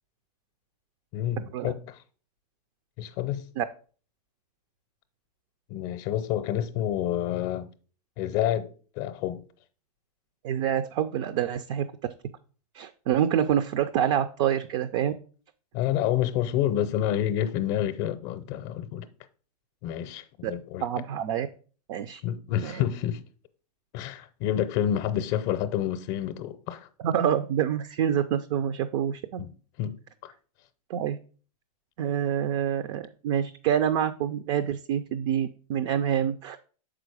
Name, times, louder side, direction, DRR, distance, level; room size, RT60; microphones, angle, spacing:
voice 1, 1.1-2.0 3.0-3.4 5.7-7.7 8.2-9.4 15.7-19.1 19.8-20.9 22.2-23.2 23.9-26.9 29.4-29.5 29.8-30.0 30.2-30.3, left 11 dB, 40° left, 0.7 m, -28 dB
voice 2, 10.4-11.9 12.7-15.1 20.4-20.5 20.8-21.5 21.9-22.2 22.6-22.8 27.0-29.4 30.9-31.2 32.0-36.6, right 9 dB, 50° right, 0.5 m, -27 dB
6.3 x 5.0 x 4.8 m
hypercardioid pair, 120°, 20 cm